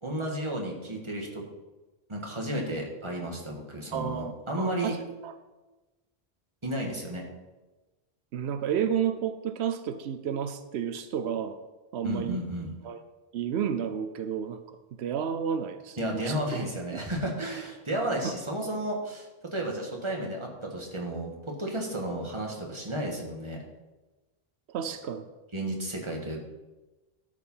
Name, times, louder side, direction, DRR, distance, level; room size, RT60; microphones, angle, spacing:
voice 1, 0.0-1.4 2.1-5.0 6.6-7.2 12.0-12.7 16.0-23.6 25.5-26.4, right 1 dB, 30° right, 0 dB, 1.8 m, -33 dB
voice 2, 3.9-5.0 5.2-5.3 8.3-11.6 11.9-12.4 12.8-13.0 13.3-16.4 16.9-17.0 18.2-18.3 24.7-25.3, right 8 dB, 90° right, 10 dB, 0.9 m, -31 dB
12.5 x 5.0 x 5.6 m, 1.2 s
omnidirectional pair, 1.1 m